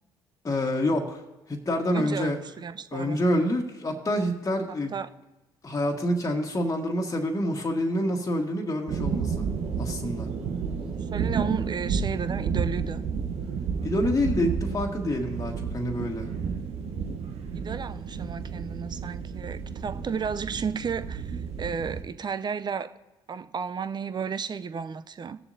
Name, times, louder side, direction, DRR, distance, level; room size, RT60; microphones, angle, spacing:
voice 1, 0.4-1.2 1.5-2.4 2.9-4.9 5.6-9.4 9.8-10.3 13.8-16.3, left 1 dB, 30° left, 1.6 m, -27 dB
voice 2, 1.9-3.2 4.9-5.1 10.9-13.0 17.5-22.9 23.3-25.4, right 6 dB, 40° right, 0.6 m, -33 dB
sound 1, 8.9-22.0, right 6 dB, 60° right, 1.0 m, -31 dB
18.5 x 7.1 x 2.7 m
hypercardioid pair, 55°, 12 cm